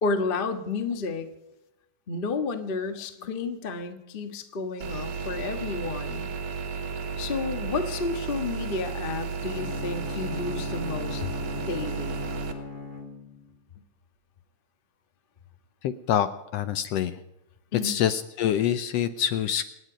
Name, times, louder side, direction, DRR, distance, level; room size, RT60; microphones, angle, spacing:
voice 1, 0.0-1.2 2.1-6.3 7.2-11.3 11.6-12.2 17.7-18.0, left 4 dB, 45° left, 7 dB, 0.7 m, -31 dB
sound 1, 4.8-12.5, right 5 dB, 90° right, 3.1 m, -33 dB
Bowed string instrument, 9.4-13.6, left 5 dB, 25° left, 1.5 m, -38 dB
voice 2, 15.8-16.3 16.5-17.2 17.8-19.7, left 10 dB, 75° left, 11 dB, 1.6 m, -25 dB
27.0 x 9.8 x 5.0 m, 0.92 s
omnidirectional pair, 3.4 m